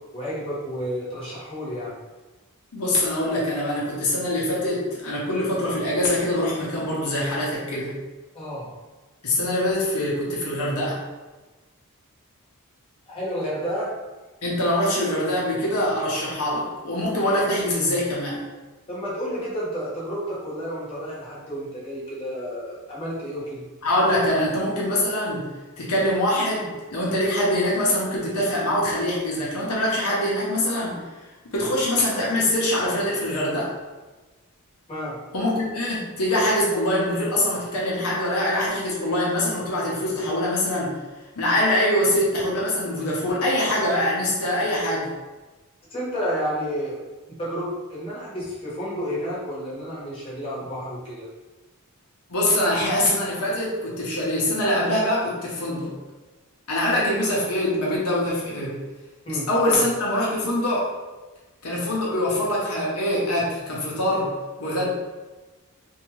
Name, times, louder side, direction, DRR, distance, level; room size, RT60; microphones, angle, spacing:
voice 1, 0.1-1.9 8.3-8.7 13.1-13.9 18.9-23.6 34.9-35.2 45.9-47.0 47.3-51.3 59.2-59.8, equal, 25° left, -8 dB, 1.0 m, -31 dB
voice 2, 2.7-7.9 9.2-11.0 14.4-18.4 23.8-25.5 25.8-33.7 35.3-40.9 41.4-45.1 52.3-55.9 56.7-58.8 59.3-60.9 61.6-64.9, left 1 dB, 75° left, -5 dB, 0.7 m, -24 dB
2.7 x 2.2 x 3.0 m, 1.2 s
head